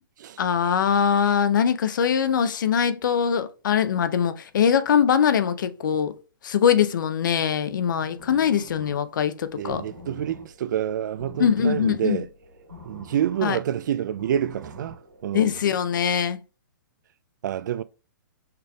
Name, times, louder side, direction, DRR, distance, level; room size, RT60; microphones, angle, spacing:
voice 1, 0.4-6.1 6.4-9.8 11.4-12.2 13.4-13.6 15.3-16.4, left 8 dB, 70° left, 0.6 m, -22 dB
sound 1, 8.0-15.6, left 2 dB, 90° right, 1.6 m, -46 dB
voice 2, 9.6-12.3 12.8-15.6 17.4-17.8, right 10 dB, 65° right, 0.4 m, -28 dB
5.8 x 3.3 x 2.3 m
hypercardioid pair, 130°, 11 cm